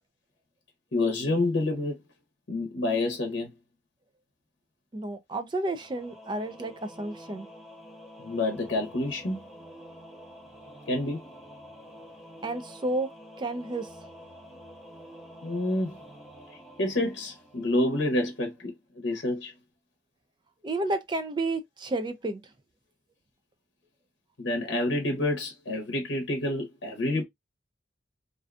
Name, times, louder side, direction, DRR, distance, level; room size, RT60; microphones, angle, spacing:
voice 1, 0.9-2.0 2.5-3.5 8.2-9.4 10.9-11.3 15.4-16.0 16.8-19.5 24.4-27.2, left 2 dB, 70° left, 0.7 m, -28 dB
voice 2, 4.9-7.5 12.4-13.1 13.4-13.9 20.6-22.4, right 2 dB, 25° right, 0.3 m, -31 dB
Singing / Musical instrument, 5.8-18.2, equal, ahead, 0.7 m, -48 dB
2.5 x 2.3 x 2.3 m
head